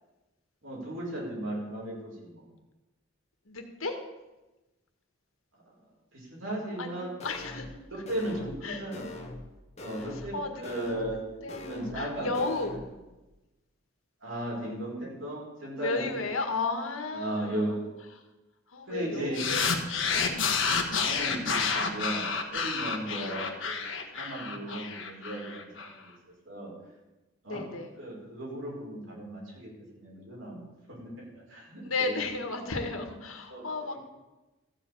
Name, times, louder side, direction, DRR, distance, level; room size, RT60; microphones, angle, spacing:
voice 1, 0.6-2.4 6.1-7.2 7.9-9.1 9.8-11.2 11.6-12.3 14.2-16.2 17.1-17.9 18.9-19.4 21.0-23.9 24.2-26.1 26.5-26.7 27.4-27.6 28.0-29.7 30.0-32.2 33.5-33.7, right 1 dB, 75° right, -4 dB, 5.1 m, -36 dB
voice 2, 3.5-4.0 6.8-7.7 7.9-8.0 8.6-8.9 10.1-10.5 11.0-11.7 11.9-12.8 15.8-17.9 18.7-19.6 20.0-21.1 23.1-23.4 27.5-27.9 31.8-34.0, left 3 dB, 90° left, 5 dB, 1.7 m, -34 dB
sound 1, 7.2-7.8 8.1-8.6 8.9-9.5 9.8-10.3 10.6-11.2 11.5-12.1 12.3-12.8, left 2 dB, 30° left, 1.3 m, -42 dB
sound 2, 19.3-25.9, left 5 dB, 65° left, 1.4 m, -29 dB
14.5 x 5.4 x 8.4 m, 1.1 s
head